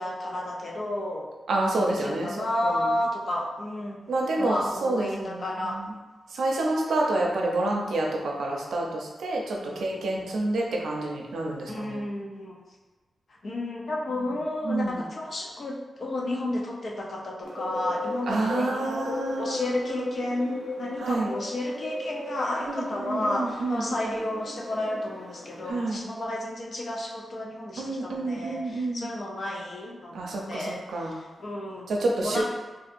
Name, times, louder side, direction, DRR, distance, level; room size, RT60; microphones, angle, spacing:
voice 1, 0.0-1.3 2.0-4.1 4.4-5.8 9.7-10.5 11.7-12.6 13.4-30.2 30.5-31.9 32.2-32.4, left 1 dB, 50° left, -2 dB, 0.6 m, -32 dB
voice 2, 1.5-2.9 4.1-6.0 6.3-12.0 14.1-14.3 14.6-15.0 18.3-20.2 21.0-21.3 22.6-24.1 25.7-26.0 27.8-29.1 30.1-31.1 31.9-32.4, right 2 dB, 85° right, -1 dB, 0.6 m, -29 dB
Bird, 17.4-25.7, left 2 dB, 85° left, 1.0 m, -37 dB
3.5 x 2.7 x 2.5 m, 1.2 s
wide cardioid pair, 125°, 0 cm